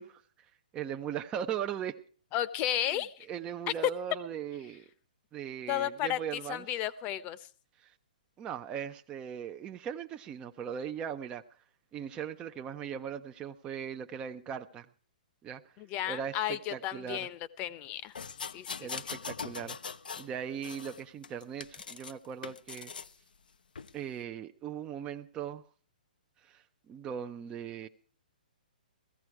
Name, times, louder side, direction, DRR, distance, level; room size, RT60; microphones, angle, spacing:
voice 1, 0.0-2.0 2.9-3.0 3.3-4.9 5.3-6.6 7.8-7.9 8.4-11.4 11.9-14.9 15.4-15.7 16.1-17.3 18.8-19.8 20.2-22.9 23.9-25.6 26.4-27.9, right 8 dB, 20° right, 5 dB, 0.7 m, -39 dB
voice 2, 2.3-3.3 5.7-7.4 15.8-18.1 18.5-18.9, left 12 dB, 30° left, 16 dB, 0.9 m, -33 dB
sound 1, 18.1-20.3 20.6-22.1 22.4-23.1 23.7-23.9, left 6 dB, 75° left, 0.7 m, -41 dB
16.5 x 14.5 x 4.7 m, 0.41 s
hypercardioid pair, 130°, 5 cm